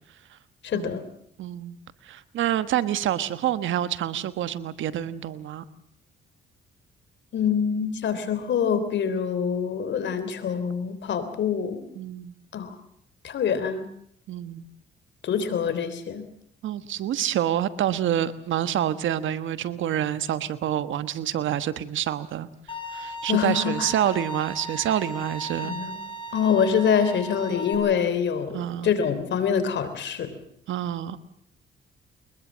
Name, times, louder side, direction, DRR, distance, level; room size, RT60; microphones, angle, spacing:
voice 1, 0.6-1.0 7.3-11.8 12.5-12.7 13.2-13.9 15.2-16.2 23.3-23.9 25.6-26.0 26.3-30.3, left 7 dB, 65° left, 11 dB, 3.4 m, -25 dB
voice 2, 1.4-1.8 2.0-5.6 11.9-12.3 14.3-14.6 16.6-22.5 22.9-25.7 28.5-28.9 30.7-31.2, right 11 dB, 75° right, 13 dB, 1.3 m, -27 dB
Bowed string instrument, 22.7-27.7, equal, 25° left, 6.8 m, -36 dB
23.0 x 21.0 x 7.4 m, 0.67 s
cardioid pair, 90°, 20 cm